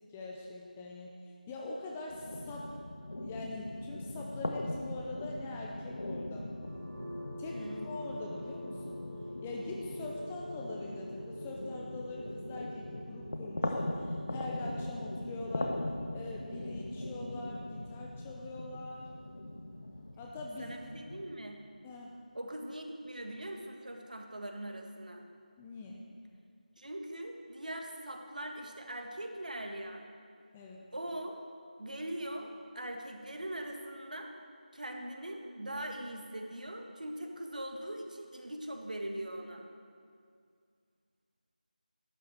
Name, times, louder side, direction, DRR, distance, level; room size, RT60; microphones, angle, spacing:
voice 1, 0.1-1.2 1.5-2.7 3.0-6.5 7.4-9.0 9.4-15.8 16.1-19.0 20.2-20.8 21.8-22.1 25.6-26.1 30.5-30.9, left 2 dB, 5° left, -2 dB, 0.3 m, -43 dB
sound 1, 2.1-21.3, left 1 dB, 55° left, 1.1 m, -40 dB
sound 2, 6.5-20.3, equal, 30° right, 1.7 m, -48 dB
voice 2, 7.5-7.9 20.6-21.7 22.3-25.2 26.8-30.1 30.9-31.4 31.8-34.3 34.7-39.7, right 1 dB, 60° right, 3 dB, 1.7 m, -41 dB
11.5 x 9.0 x 7.6 m, 2.2 s
figure-of-eight pair, 165°, 5 cm